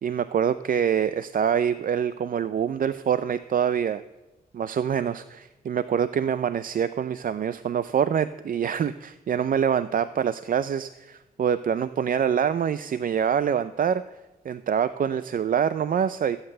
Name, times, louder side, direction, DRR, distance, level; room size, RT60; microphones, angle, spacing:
voice 1, 0.0-4.0 4.5-14.0 14.4-16.4, right 8 dB, 55° right, 14 dB, 0.5 m, -25 dB
16.0 x 8.1 x 6.7 m, 1.1 s
cardioid pair, 60°, 17 cm